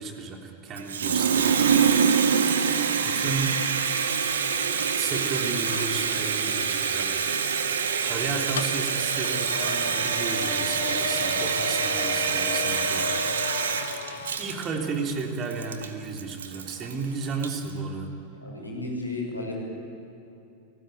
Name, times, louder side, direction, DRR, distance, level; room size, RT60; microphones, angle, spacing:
voice 1, 0.0-1.8 3.0-3.6 4.8-7.2 8.0-13.2 14.2-18.2, right 4 dB, 30° right, 2 dB, 3.5 m, -33 dB
Water tap faucet, 0.8-17.7, right 6 dB, 65° right, 1.8 m, -26 dB
sound 1, 5.7-14.4, left 7 dB, 65° left, 1.4 m, -36 dB
voice 2, 18.3-19.5, left 2 dB, 85° left, 0 dB, 6.2 m, -33 dB
30.0 x 18.5 x 9.2 m, 2.7 s
figure-of-eight pair, 90°, 0 cm